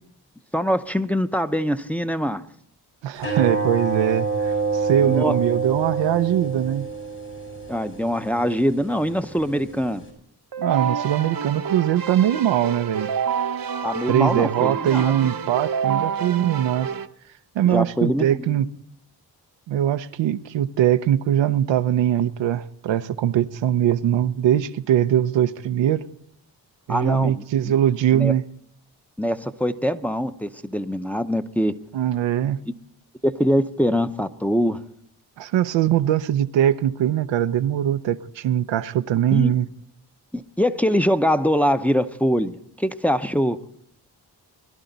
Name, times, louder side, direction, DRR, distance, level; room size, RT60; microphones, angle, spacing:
voice 1, 0.5-2.4 5.0-5.4 7.7-10.0 13.8-15.2 17.6-18.6 26.9-27.7 28.1-28.3 29.2-31.7 33.2-34.8 39.3-39.5 40.3-43.6, equal, 5° left, 0.7 m, -23 dB
voice 2, 3.0-4.5 4.8-6.8 10.6-13.1 14.1-16.9 17.6-18.7 19.7-26.0 26.9-28.4 31.9-32.6 35.4-39.7, right 11 dB, 85° right, 0.6 m, -21 dB
sound 1, 3.2-10.1, right 4 dB, 70° left, 5.6 m, -28 dB
Keyboard (musical), 10.5-17.1, right 7 dB, 55° right, 0.8 m, -28 dB
21.0 x 11.5 x 4.0 m
supercardioid pair, 45°, 43 cm